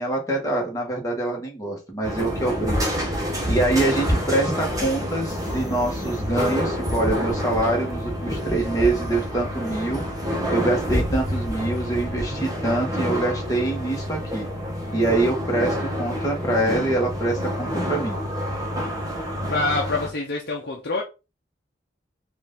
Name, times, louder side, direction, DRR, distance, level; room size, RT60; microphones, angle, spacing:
voice 1, 0.0-2.9 3.5-10.0 10.5-14.5 14.9-18.1, right 2 dB, 20° left, 1.5 m, -25 dB
sound 1, 2.0-20.1, equal, 20° right, 1.2 m, -27 dB
voice 2, 19.5-21.0, left 3 dB, 60° left, 0.7 m, -26 dB
4.6 x 2.6 x 3.7 m
head